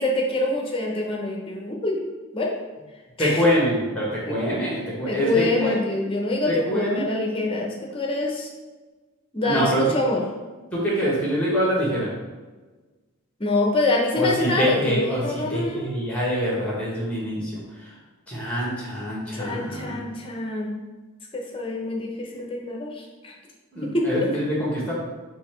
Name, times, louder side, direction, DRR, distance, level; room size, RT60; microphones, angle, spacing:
voice 1, 0.0-2.0 2.3-2.6 3.2-3.4 4.3-4.4 5.1-8.5 9.3-10.2 13.4-15.9 19.3-20.7 21.3-23.3 23.8-24.3, left 2 dB, 25° left, -1 dB, 0.7 m, -25 dB
voice 2, 3.2-5.7 6.5-7.0 9.4-9.9 10.7-12.1 14.1-17.6 18.3-20.0 23.7-24.9, equal, 5° left, -5 dB, 1.2 m, -25 dB
4.0 x 2.8 x 4.4 m, 1.3 s
head